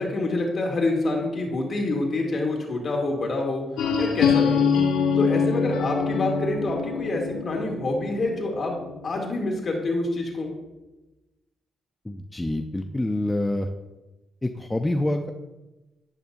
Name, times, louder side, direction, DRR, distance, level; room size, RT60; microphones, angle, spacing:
voice 1, 0.0-3.6 3.9-4.7 5.2-8.7 9.0-10.5, left 2 dB, 55° left, 0 dB, 2.8 m, -27 dB
sound 1, 3.8-9.5, left 6 dB, 85° left, 1.3 m, -25 dB
voice 2, 12.0-13.7 14.4-15.3, left 1 dB, 15° left, 5 dB, 0.8 m, -26 dB
10.5 x 10.0 x 2.7 m, 1.0 s
supercardioid pair, 55°, 0 cm